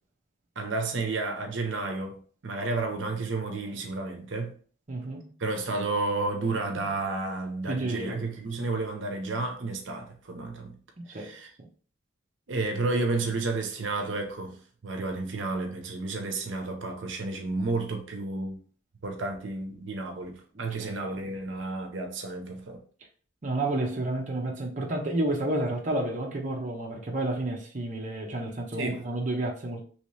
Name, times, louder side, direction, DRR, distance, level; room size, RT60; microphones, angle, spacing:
voice 1, 0.6-4.5 5.4-10.8 11.1-11.5 12.5-18.6 19.0-22.8 28.7-29.0, right 3 dB, 85° right, 0.7 m, -31 dB
voice 2, 4.9-5.3 7.6-8.2 11.0-11.4 20.5-21.0 23.4-29.8, right 2 dB, 40° right, 0.7 m, -31 dB
3.1 x 2.8 x 3.1 m
head